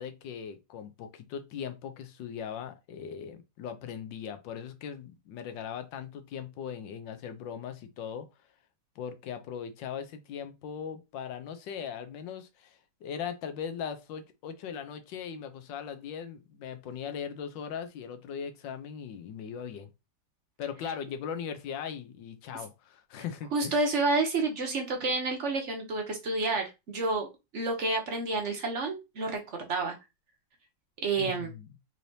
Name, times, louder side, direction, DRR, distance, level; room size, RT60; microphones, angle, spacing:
voice 1, 0.0-8.3 9.0-19.9 20.6-23.8 31.2-31.7, left 7 dB, 80° left, 1.3 m, -39 dB
voice 2, 23.5-27.3 27.5-29.9 31.0-31.5, right 3 dB, 55° right, 0.8 m, -29 dB
4.2 x 3.2 x 2.7 m
omnidirectional pair, 2.0 m